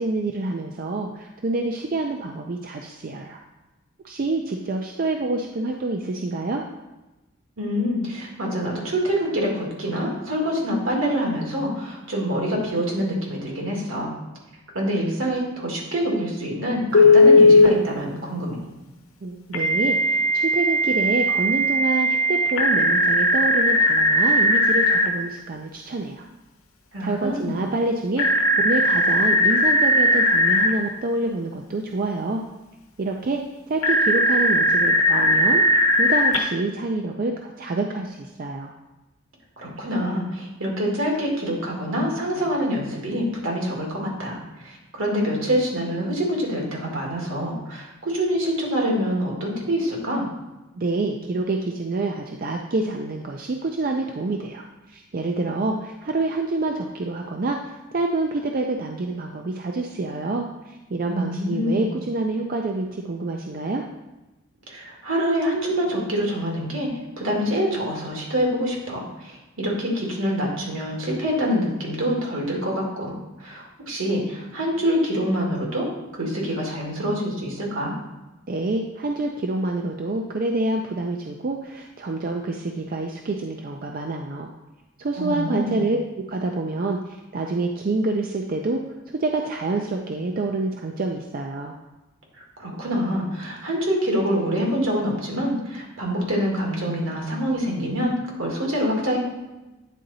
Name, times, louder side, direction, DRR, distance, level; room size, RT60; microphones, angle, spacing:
voice 1, 0.0-3.4 4.0-6.6 19.2-26.3 27.0-28.3 28.6-32.4 33.0-33.4 33.7-38.7 50.8-63.9 78.5-84.5 85.0-86.0 86.3-88.8 89.1-91.7, right 2 dB, 45° right, 2 dB, 0.4 m, -27 dB
voice 2, 7.6-14.1 14.7-18.7 26.9-27.6 39.6-50.3 61.1-61.9 64.7-66.9 67.2-77.9 85.2-85.8 92.4-99.2, equal, 75° right, -1 dB, 1.9 m, -26 dB
Telephone, 16.9-17.7 19.5-25.1 28.2-30.7 33.8-36.4, left 1 dB, 80° left, 1.0 m, -18 dB
9.2 x 3.8 x 4.0 m, 1.0 s
head